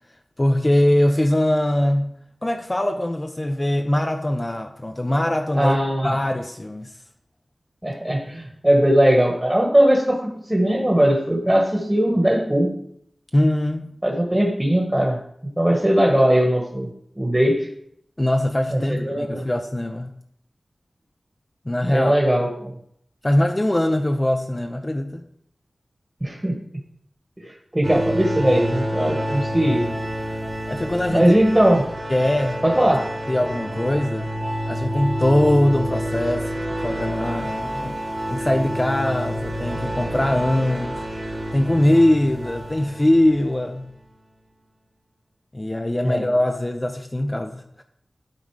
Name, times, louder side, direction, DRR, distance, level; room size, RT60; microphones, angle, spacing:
voice 1, 0.4-5.8 6.0-7.0 13.3-14.0 18.2-20.1 21.7-22.2 23.2-25.2 30.7-31.4 32.1-32.6 33.3-34.3 34.7-38.0 38.3-43.9 45.5-47.8, left 1 dB, 25° left, 5 dB, 0.6 m, -22 dB
voice 2, 5.6-6.1 7.8-12.7 14.0-15.2 15.6-16.9 17.2-17.7 18.7-19.5 21.8-22.7 26.2-26.5 27.4-29.9 31.1-31.8 32.6-33.0 46.0-46.2, right 1 dB, 15° right, 0 dB, 1.5 m, -19 dB
sound 1, 27.8-43.8, equal, 45° right, 2.0 m, -28 dB
11.5 x 3.9 x 4.8 m, 0.70 s
wide cardioid pair, 55°, 0 cm